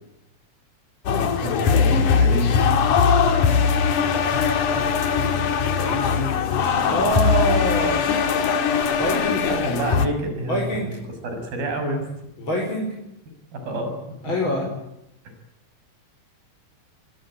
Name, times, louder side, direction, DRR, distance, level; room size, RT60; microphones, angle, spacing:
sound 1, 1.1-10.1, left 6 dB, 60° left, 3.1 m, -20 dB
voice 1, 1.1-2.6 9.4-10.6 11.2-12.1 13.5-14.0, right 1 dB, 70° right, 5 dB, 8.2 m, -28 dB
voice 2, 5.7-6.3 6.6-8.0 8.9-9.5 10.5-10.9 12.4-12.9 14.2-14.7, equal, 30° left, 0 dB, 5.4 m, -25 dB
24.5 x 22.0 x 9.1 m, 0.83 s
omnidirectional pair, 4.3 m